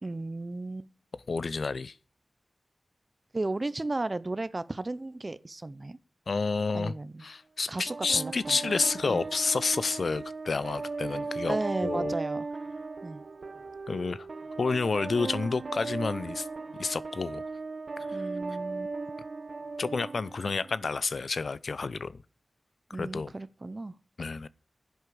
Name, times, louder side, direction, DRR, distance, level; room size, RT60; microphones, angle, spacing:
voice 1, 0.0-0.9 3.3-6.0 6.7-7.2 7.7-8.7 9.1-9.2 11.5-12.5 13.0-13.2 18.1-18.9 22.9-23.9, right 2 dB, 35° right, 0.8 m, -34 dB
voice 2, 1.3-2.0 6.3-6.9 7.2-11.6 11.8-12.1 13.9-14.3 14.6-16.5 16.8-17.4 18.1-18.2 19.8-22.2 23.0-23.3 24.2-24.5, left 4 dB, 80° left, 0.6 m, -30 dB
sound 1, 7.9-20.9, right 3 dB, 75° right, 1.0 m, -37 dB
11.0 x 8.0 x 6.8 m
wide cardioid pair, 70°, 0 cm